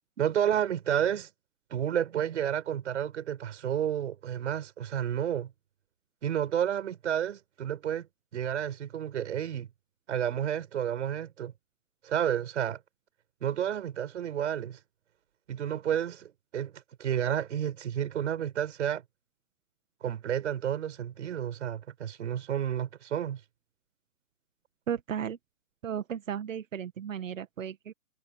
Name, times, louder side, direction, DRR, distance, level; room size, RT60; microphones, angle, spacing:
voice 1, 0.2-1.3 1.7-5.5 6.2-8.1 8.3-9.7 10.1-11.5 12.0-12.8 13.4-14.8 15.5-19.0 20.0-23.4, right 9 dB, 65° right, 7.7 m, -31 dB
voice 2, 24.9-25.4 25.8-27.9, right 8 dB, 80° right, 2.0 m, -35 dB
hypercardioid pair, 160°, 38 cm